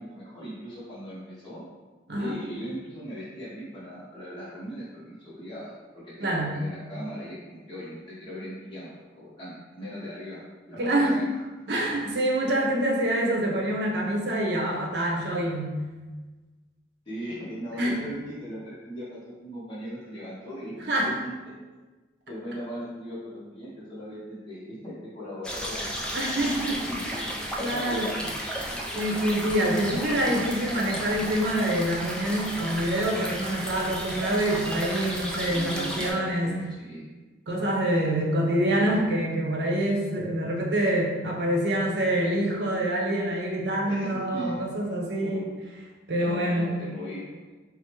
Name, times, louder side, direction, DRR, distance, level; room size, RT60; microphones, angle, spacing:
voice 1, 0.0-1.6 2.2-10.4 10.7-11.4 17.1-21.5 22.3-25.9 26.8-27.0 27.6-28.3 35.4-37.0 43.8-44.7 45.2-45.5 46.2-47.5, equal, 25° left, -11 dB, 0.7 m, -38 dB
voice 2, 6.2-6.5 10.8-11.2 11.7-15.7 17.8-18.0 20.8-21.1 26.1-27.3 27.6-28.1 28.9-36.5 37.5-45.5 46.1-46.8, right 1 dB, 65° right, -2 dB, 0.7 m, -26 dB
sound 1, 25.4-36.1, equal, 5° left, 0.3 m, -33 dB
4.8 x 2.0 x 2.8 m, 1.3 s
head